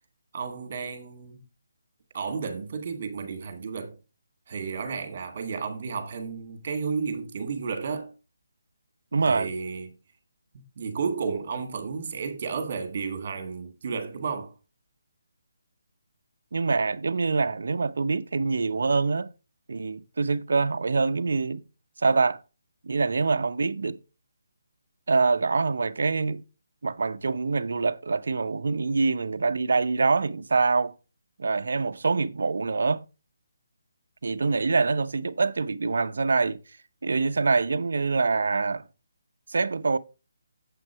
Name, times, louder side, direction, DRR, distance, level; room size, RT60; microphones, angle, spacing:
voice 1, 0.3-1.4 2.1-4.0 4.5-8.1 9.2-10.0 10.5-14.5, right 5 dB, 45° right, 2.4 m, -32 dB
voice 2, 9.1-9.5 16.5-19.3 19.7-21.6 22.0-22.4 22.8-24.0 25.1-26.4 26.8-30.9 31.4-33.0 34.2-36.6 37.0-38.8 39.5-40.0, right 4 dB, 70° right, 0.7 m, -25 dB
7.8 x 6.0 x 4.6 m
hypercardioid pair, 165°, 0 cm